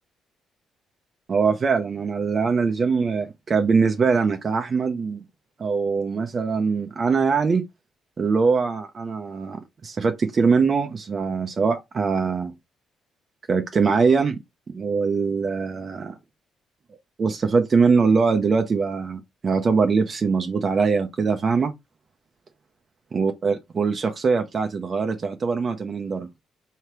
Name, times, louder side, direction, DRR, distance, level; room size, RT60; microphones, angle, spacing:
voice 1, 1.3-5.2 5.6-7.6 8.2-12.5 13.5-14.4 14.7-16.2 17.2-21.7 23.1-26.3, right 5 dB, 40° right, 0.5 m, -22 dB
3.3 x 2.8 x 4.5 m
cardioid pair, 90°, 0 cm